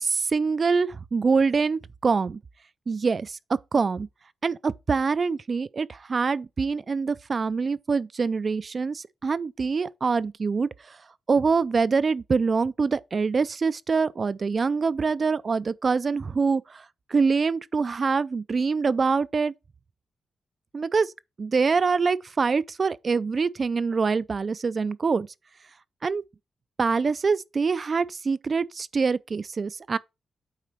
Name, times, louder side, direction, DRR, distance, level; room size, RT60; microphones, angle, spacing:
voice 1, 0.0-2.4 2.9-3.4 3.7-4.1 4.4-11.0 11.3-16.8 17.1-19.5 20.7-21.1 21.4-25.3 26.0-26.2 26.8-30.0, right 4 dB, 35° right, 0.4 m, -25 dB
8.6 x 4.2 x 4.5 m
wide cardioid pair, 150°, 0 cm